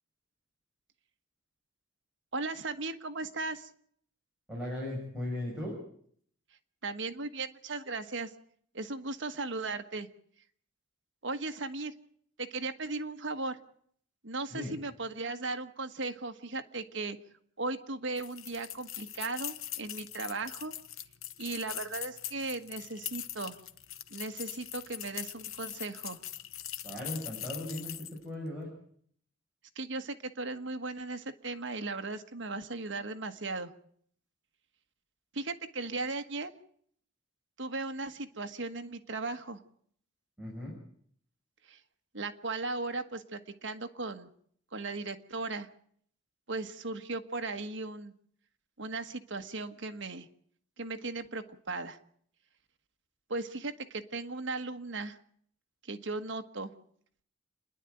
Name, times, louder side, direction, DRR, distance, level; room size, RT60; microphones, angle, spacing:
voice 1, 2.3-3.7 6.8-8.3 8.7-10.1 11.2-11.9 12.4-13.6 14.2-17.2 17.6-20.7 21.4-23.6 24.1-26.2 29.7-33.7 35.3-36.5 37.6-39.6 41.7-41.8 42.1-44.3 44.7-45.7 46.5-48.1 48.8-50.3 50.8-52.0 53.3-55.2 55.8-56.7, right 3 dB, 60° right, 7 dB, 1.3 m, -37 dB
voice 2, 4.5-5.8 14.5-14.7 26.8-28.7 40.4-40.7, left 1 dB, 5° right, -5 dB, 5.9 m, -37 dB
sound 1, 18.2-28.2, left 12 dB, 75° left, 0.9 m, -42 dB
28.5 x 10.5 x 9.0 m, 0.63 s
head